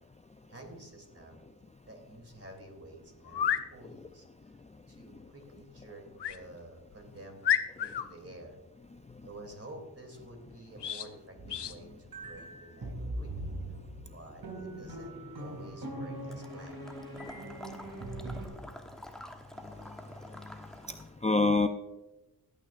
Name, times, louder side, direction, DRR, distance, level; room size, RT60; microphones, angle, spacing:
voice 1, 0.5-1.4 1.9-4.3 4.9-7.4 7.8-8.6 9.2-13.5 14.1-16.9, right 1 dB, 35° right, 2 dB, 3.0 m, -50 dB
sound 1, 2.3-2.4 3.2-3.7 6.2-6.4 6.9-7.0 7.4-8.1 10.8-11.1 11.5-11.8, left 9 dB, 85° left, 0.7 m, -30 dB
sound 2, 11.4-18.5, right 1 dB, 65° right, 2.8 m, -41 dB
Water / Liquid, 16.3-21.1, left 1 dB, ahead, 1.2 m, -49 dB
voice 2, 19.6-21.7, left 3 dB, 15° left, 7 dB, 0.5 m, -31 dB
17.0 x 9.2 x 2.5 m, 1.0 s
wide cardioid pair, 65°, 40 cm